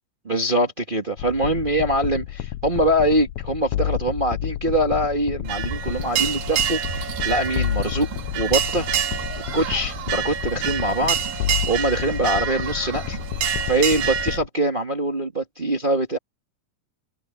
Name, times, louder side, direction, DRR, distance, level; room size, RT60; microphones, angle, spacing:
voice 1, 0.2-8.1 8.3-8.9 9.5-13.2 13.7-16.2, right 1 dB, 35° right, 0.8 m, -23 dB
sound 1, 1.2-14.5, left 13 dB, 85° left, 1.6 m, -31 dB
sound 2, 5.4-14.4, right 9 dB, 85° right, 3.6 m, -27 dB
omnidirectional pair, 4.0 m